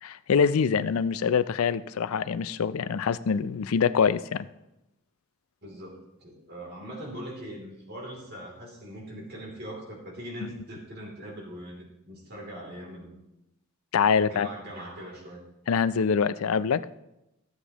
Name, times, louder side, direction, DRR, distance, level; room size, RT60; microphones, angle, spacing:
voice 1, 0.0-4.5 13.9-14.5 15.7-16.9, left 6 dB, 80° left, 0.4 m, -24 dB
voice 2, 5.6-13.2 14.3-15.4, equal, 50° right, 2.9 m, -41 dB
14.5 x 8.0 x 3.0 m
head